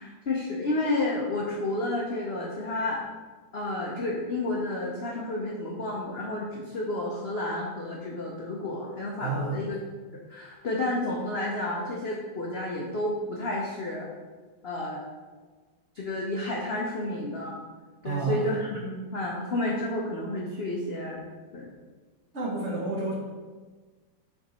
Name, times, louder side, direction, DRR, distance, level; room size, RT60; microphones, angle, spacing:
voice 1, 0.0-3.0 3.5-9.8 10.3-14.1 14.6-15.1 15.9-17.6 18.0-21.2 21.5-21.7, left 2 dB, 65° left, -3 dB, 0.6 m, -31 dB
voice 2, 9.2-9.6 18.0-18.5 22.3-23.1, right 3 dB, 45° right, -4 dB, 1.1 m, -30 dB
6.1 x 3.9 x 4.2 m, 1.4 s
omnidirectional pair, 2.1 m